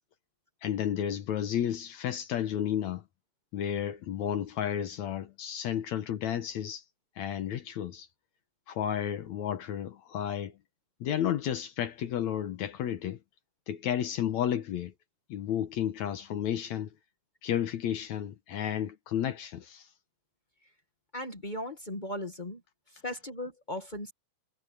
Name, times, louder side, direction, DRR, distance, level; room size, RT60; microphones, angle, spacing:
voice 1, 0.6-3.0 3.5-6.8 7.2-8.1 8.7-10.5 11.0-13.2 13.7-14.9 15.3-16.9 17.4-19.9, left 10 dB, 65° left, 2.2 m, -32 dB
voice 2, 21.1-22.6 22.9-24.1, left 1 dB, 30° left, 0.8 m, -37 dB
omnidirectional pair, 3.8 m